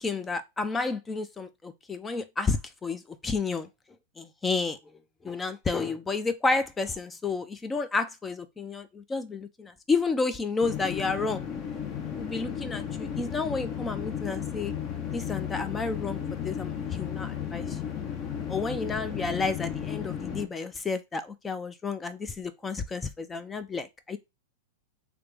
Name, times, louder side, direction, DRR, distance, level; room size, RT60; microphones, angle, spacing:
voice 1, 0.0-3.7 4.2-4.8 5.2-11.4 12.2-14.7 15.1-17.9 18.5-24.2, left 4 dB, 15° left, 0.4 m, -31 dB
sound 1, 10.6-20.5, left 8 dB, 35° left, 0.8 m, -34 dB
3.3 x 2.9 x 3.3 m
hypercardioid pair, 120°, 0 cm